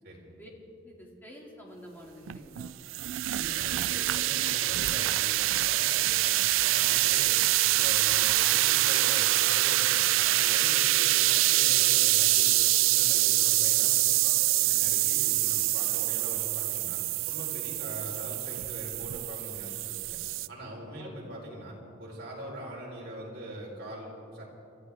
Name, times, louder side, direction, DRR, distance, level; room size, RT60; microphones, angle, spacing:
voice 1, 0.8-2.7 10.7-10.8 15.1-15.2 17.6-17.9 21.0-21.2, equal, 10° left, -2 dB, 2.4 m, -49 dB
sound 1, 2.3-20.5, right 17 dB, 80° right, 0.4 m, -25 dB
voice 2, 3.3-7.4 7.7-20.2 20.5-24.5, right 1 dB, 50° right, -3 dB, 4.0 m, -42 dB
28.5 x 13.5 x 3.5 m, 2.8 s
head